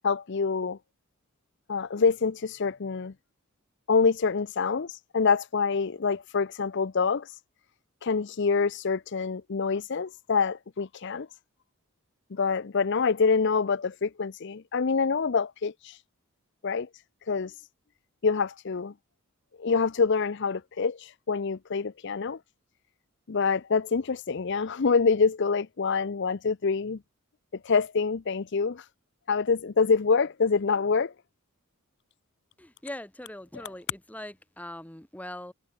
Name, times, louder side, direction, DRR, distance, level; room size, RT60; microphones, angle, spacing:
voice 1, 0.0-0.8 1.7-3.1 3.9-7.3 8.0-11.3 12.3-16.0 16.6-16.9 17.3-17.5 18.2-18.9 19.6-22.4 23.3-27.0 27.6-28.8 29.3-31.1, left 5 dB, 55° left, 0.5 m, -26 dB
voice 2, 32.6-35.5, left 1 dB, 5° left, 1.2 m, -41 dB
head